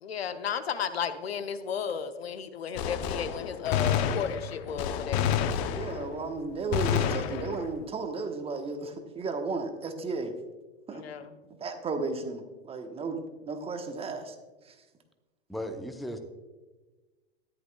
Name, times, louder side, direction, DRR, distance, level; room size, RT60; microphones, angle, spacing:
voice 1, 0.0-5.5 10.9-11.3, left 7 dB, 75° left, 10 dB, 0.9 m, -34 dB
Gunshot gunfire, 2.8-6.3 6.7-7.8, left 8 dB, 40° left, 0.8 m, -29 dB
voice 2, 5.7-10.3 10.9-13.2 13.5-14.3 14.6-14.7, right 3 dB, 20° right, 6 dB, 1.1 m, -34 dB
voice 3, 15.5-16.2, equal, ahead, 6 dB, 0.8 m, -36 dB
13.5 x 11.0 x 2.3 m, 1.2 s
figure-of-eight pair, 100°, 32 cm